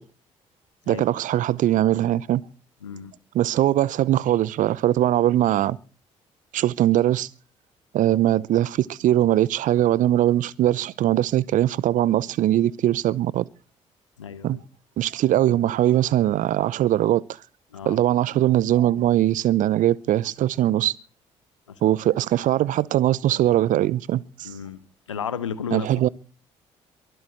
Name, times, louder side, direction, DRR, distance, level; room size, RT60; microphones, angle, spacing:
voice 1, 0.9-2.4 3.3-5.8 6.5-7.3 7.9-13.5 14.4-14.6 15.0-17.2 17.9-20.9 21.8-24.5 25.7-26.1, right 13 dB, 60° right, 0.7 m, -21 dB
voice 2, 2.8-3.1 14.2-14.6 17.7-18.0 21.7-21.9 24.4-24.8 25.1-26.1, left 7 dB, 90° left, 1.0 m, -33 dB
23.5 x 7.9 x 6.5 m
figure-of-eight pair, 45°, 15 cm